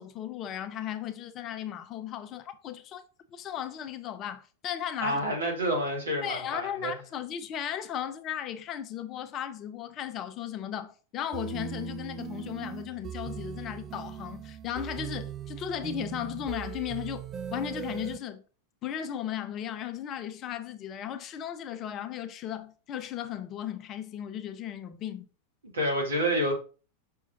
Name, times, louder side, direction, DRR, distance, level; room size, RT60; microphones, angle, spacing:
voice 1, 0.0-3.0 3.3-5.2 6.2-17.2 17.5-18.4 18.8-25.3, left 10 dB, 30° left, 0.6 m, -36 dB
voice 2, 5.0-6.9 25.7-26.5, equal, 70° right, 2.2 m, -28 dB
sound 1, 11.3-18.2, right 10 dB, 25° right, 0.5 m, -39 dB
6.0 x 5.6 x 2.7 m
figure-of-eight pair, 90°, 0 cm